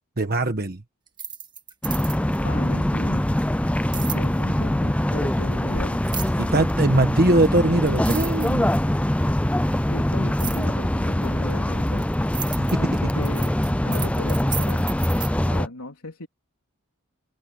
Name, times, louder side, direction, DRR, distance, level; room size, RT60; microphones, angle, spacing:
voice 1, 0.2-0.8 6.4-8.7 12.6-13.2, right 2 dB, 45° right, 1.3 m, -21 dB
sound 1, 1.1-2.4 3.9-4.2 6.0-6.5 7.4-7.5 7.9-9.0 10.4-10.7 11.5-15.3, right 8 dB, 20° right, 1.6 m, -34 dB
sound 2, 1.8-15.7, left 1 dB, 5° left, 0.4 m, -23 dB
voice 2, 2.4-3.2 3.9-6.0 9.9-12.1 12.8-13.5 13.8-14.9 15.4-16.3, left 2 dB, 90° left, 3.6 m, -36 dB
head